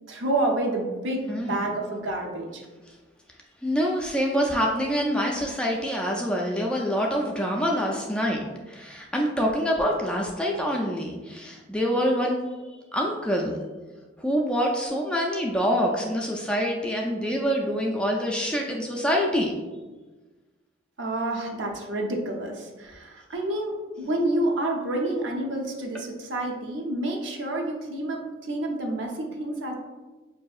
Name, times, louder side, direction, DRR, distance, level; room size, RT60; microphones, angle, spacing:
voice 1, 0.1-2.6 21.0-29.7, right 1 dB, 70° right, 1 dB, 0.6 m, -29 dB
voice 2, 1.3-1.6 3.6-12.5 12.9-13.6 14.2-19.5, equal, 5° left, -1 dB, 0.3 m, -26 dB
5.0 x 2.7 x 2.3 m, 1.2 s
head